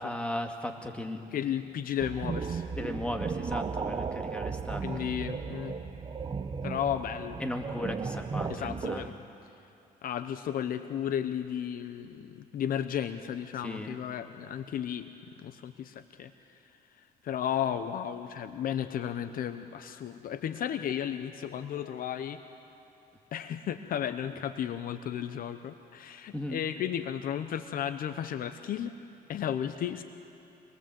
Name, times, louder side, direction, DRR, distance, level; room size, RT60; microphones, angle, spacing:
voice 1, 0.0-1.2 2.8-5.1 7.4-9.1 13.6-14.0 26.3-26.6, left 1 dB, 5° left, 3 dB, 2.0 m, -36 dB
voice 2, 1.3-2.7 4.8-5.8 6.6-7.4 8.5-9.1 10.0-15.1 15.4-16.6 17.0-22.4 23.3-29.0 29.3-30.0, left 9 dB, 60° left, 10 dB, 0.9 m, -34 dB
sound 1, 2.0-9.1, right 5 dB, 25° right, 0.9 m, -35 dB
26.0 x 21.0 x 7.7 m, 2.8 s
cardioid pair, 110°, 17 cm